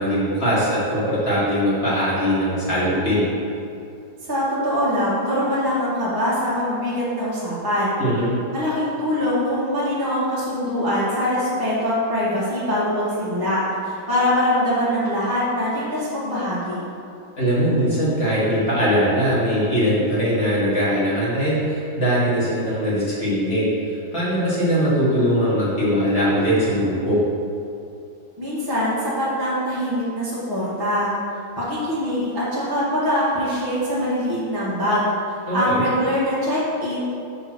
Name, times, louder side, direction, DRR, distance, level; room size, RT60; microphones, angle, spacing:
voice 1, 0.0-3.3 8.0-8.3 17.4-23.7 24.1-27.2 35.5-35.8, equal, 35° left, -9 dB, 2.0 m, -21 dB
voice 2, 4.2-8.0 8.5-16.8 28.4-31.1 31.6-35.1 35.5-37.0, equal, 15° right, -10 dB, 1.5 m, -23 dB
5.8 x 4.2 x 6.1 m, 2.5 s
omnidirectional pair, 1.9 m